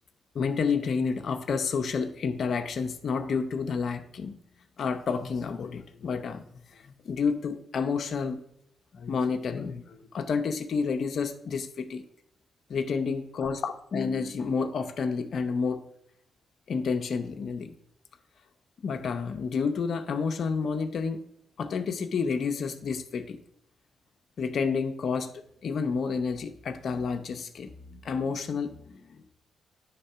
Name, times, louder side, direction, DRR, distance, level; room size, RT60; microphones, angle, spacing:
voice 1, 0.3-4.3 4.8-6.4 6.7-8.4 8.9-12.0 12.7-15.8 16.7-17.7 18.8-21.2 21.6-23.4 24.4-25.3 25.6-29.3, left 5 dB, 65° left, 7 dB, 0.6 m, -30 dB
9.4 x 3.6 x 5.5 m, 0.75 s
cardioid pair, 70°, 0 cm